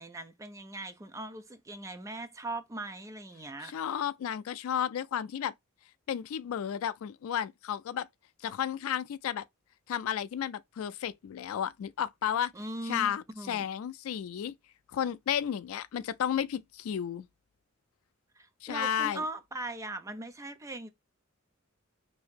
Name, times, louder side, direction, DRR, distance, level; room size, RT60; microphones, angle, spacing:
voice 1, 0.0-3.7 12.5-13.7 18.4-20.9, right 2 dB, 15° right, 0.4 m, -40 dB
voice 2, 3.6-5.5 6.1-8.1 8.4-9.4 9.9-12.5 12.8-14.5 14.9-17.3 18.6-19.2, left 9 dB, 80° left, 0.3 m, -32 dB
2.8 x 2.7 x 3.4 m
head